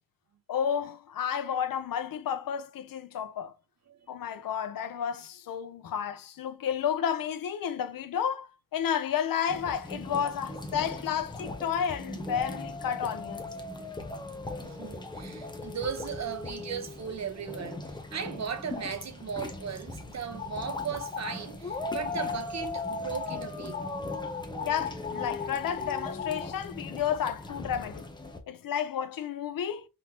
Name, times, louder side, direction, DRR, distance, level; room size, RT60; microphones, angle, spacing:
voice 1, 0.5-3.5 4.1-13.4 24.7-28.0 28.5-29.8, left 8 dB, 70° left, 0.7 m, -31 dB
sound 1, 9.5-28.4, left 2 dB, 15° left, 0.7 m, -39 dB
voice 2, 14.6-23.8, right 7 dB, 50° right, 0.8 m, -37 dB
sound 2, 20.4-21.3 21.7-22.4 22.7-23.4 23.7-26.5, left 7 dB, 30° left, 1.3 m, -37 dB
5.6 x 3.1 x 2.8 m
wide cardioid pair, 155°, 35 cm